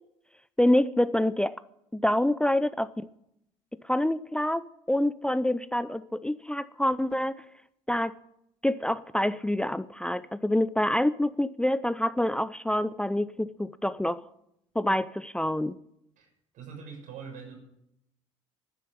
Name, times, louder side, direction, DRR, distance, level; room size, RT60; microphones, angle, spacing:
voice 1, 0.6-1.6 1.9-2.9 3.8-7.4 7.9-8.2 8.6-14.2 14.8-15.8, left 1 dB, 5° left, 0.5 m, -26 dB
voice 2, 16.2-17.6, right 6 dB, 55° right, 6.6 m, -44 dB
11.5 x 10.0 x 9.8 m
hypercardioid pair, 65°, 16 cm